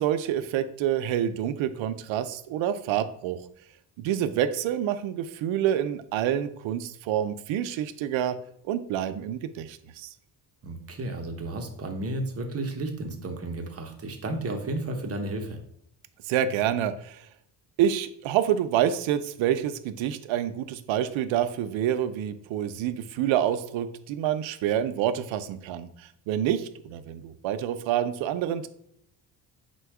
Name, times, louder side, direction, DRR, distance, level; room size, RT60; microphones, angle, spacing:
voice 1, 0.0-3.4 4.0-8.4 8.7-10.1 16.3-17.2 17.8-28.7, right 10 dB, 80° right, 11 dB, 0.5 m, -27 dB
voice 2, 10.6-15.6, right 2 dB, 30° right, 4 dB, 0.6 m, -33 dB
4.2 x 2.3 x 4.6 m, 0.71 s
cardioid pair, 130°, 46 cm